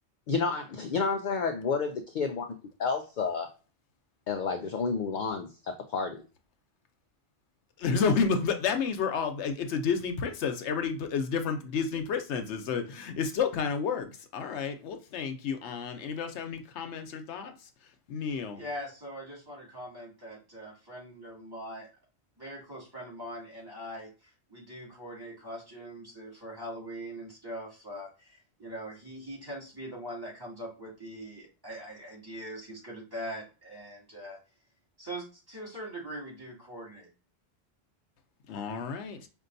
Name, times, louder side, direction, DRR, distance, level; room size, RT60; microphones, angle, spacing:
voice 1, 0.3-2.5 2.8-3.5 4.3-6.2, left 5 dB, 55° left, 0.6 m, -30 dB
voice 2, 7.8-17.7 18.1-18.6 38.5-39.3, left 5 dB, 90° left, 1.0 m, -30 dB
voice 3, 18.6-21.9 22.4-34.4 35.0-37.1, equal, 20° right, 2.2 m, -42 dB
5.3 x 2.5 x 2.6 m
omnidirectional pair, 1.1 m